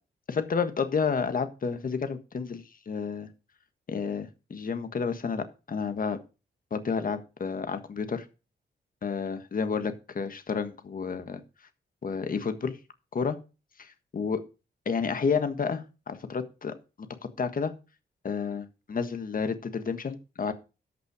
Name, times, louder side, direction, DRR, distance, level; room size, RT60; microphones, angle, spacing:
voice 1, 0.3-3.3 3.9-6.2 6.7-8.2 9.0-11.4 12.0-12.8 13.1-13.4 14.1-14.4 14.8-16.8 17.4-17.7 18.2-20.5, left 5 dB, 50° left, 9 dB, 1.5 m, -30 dB
13.0 x 5.8 x 4.9 m, 0.31 s
cardioid pair, 85°, 18 cm